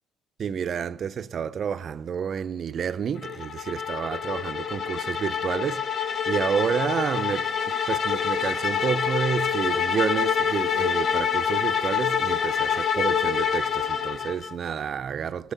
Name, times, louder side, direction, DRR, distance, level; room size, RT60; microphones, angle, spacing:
voice 1, 0.4-7.5 7.9-15.5, right 7 dB, 50° right, 0.3 m, -29 dB
sound 1, 3.2-14.6, left 7 dB, 50° left, 0.5 m, -26 dB
13.5 x 6.2 x 5.5 m
cardioid pair, 90°, 0 cm